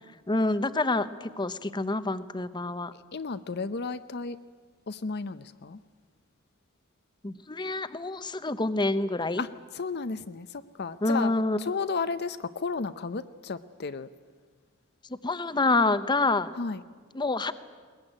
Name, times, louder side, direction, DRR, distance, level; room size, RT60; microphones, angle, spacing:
voice 1, 0.3-2.9 7.2-9.4 11.0-11.6 15.2-16.5 17.1-17.5, left 2 dB, 20° left, 13 dB, 0.8 m, -27 dB
voice 2, 3.1-4.4 4.9-5.8 9.4-9.5 9.7-11.3 11.6-14.1 16.6-16.8, left 4 dB, 50° left, 11 dB, 0.7 m, -33 dB
21.0 x 20.0 x 9.9 m, 1.5 s
head